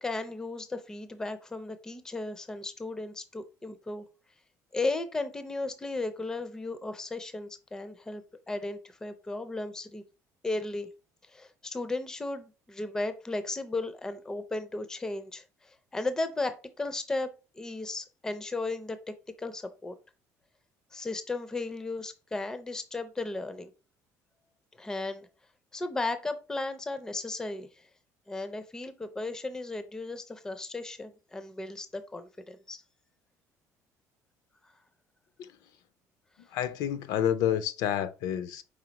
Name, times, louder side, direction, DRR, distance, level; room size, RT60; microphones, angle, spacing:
voice 1, 0.0-4.1 4.7-10.0 10.4-10.9 11.3-19.0 19.4-19.9 20.9-23.7 24.8-25.3 25.7-27.7 28.3-32.8, left 2 dB, 10° left, 0.4 m, -35 dB
voice 2, 36.5-38.6, left 10 dB, 70° left, 0.5 m, -29 dB
5.0 x 3.7 x 2.9 m
cardioid pair, 170°, 7 cm